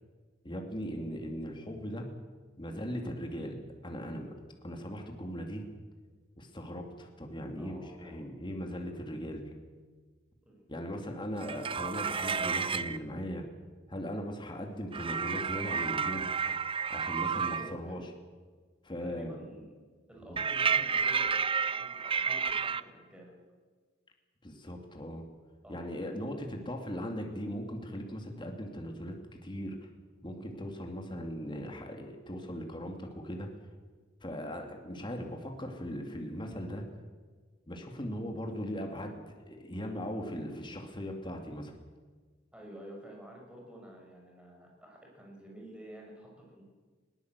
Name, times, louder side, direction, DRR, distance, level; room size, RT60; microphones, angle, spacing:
voice 1, 0.4-2.1 2.6-3.6 3.8-4.3 4.6-5.6 6.4-9.4 10.7-13.4 13.9-16.2 16.9-18.0 18.8-19.3 20.3-20.4 24.4-25.2 25.7-29.2 29.4-29.9 30.2-33.5 34.2-36.8 37.7-41.7, equal, 25° left, 3 dB, 2.5 m, -39 dB
voice 2, 7.5-8.2 10.4-10.7 17.4-18.0 19.0-19.8 20.1-23.3 25.6-25.9 42.5-46.6, equal, 5° right, -1 dB, 6.3 m, -50 dB
sound 1, 11.4-13.0 14.9-17.7 20.4-22.8, right 6 dB, 30° right, 0.6 m, -31 dB
21.0 x 18.0 x 8.2 m, 1.5 s
head